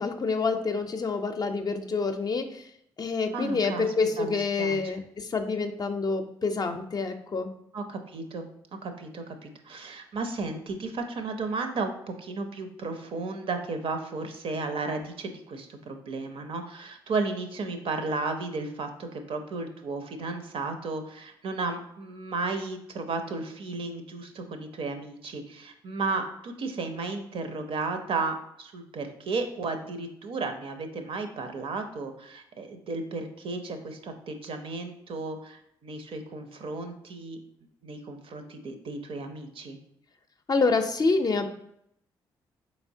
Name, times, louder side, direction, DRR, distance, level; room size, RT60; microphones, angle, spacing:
voice 1, 0.0-2.7 3.0-7.5 40.5-41.5, left 4 dB, 40° left, 6 dB, 0.5 m, -27 dB
voice 2, 3.3-3.9 4.2-4.8 7.7-8.5 8.8-37.4 37.8-39.8, right 3 dB, 55° right, 6 dB, 0.6 m, -34 dB
4.1 x 3.1 x 2.6 m, 0.74 s
hypercardioid pair, 45°, 11 cm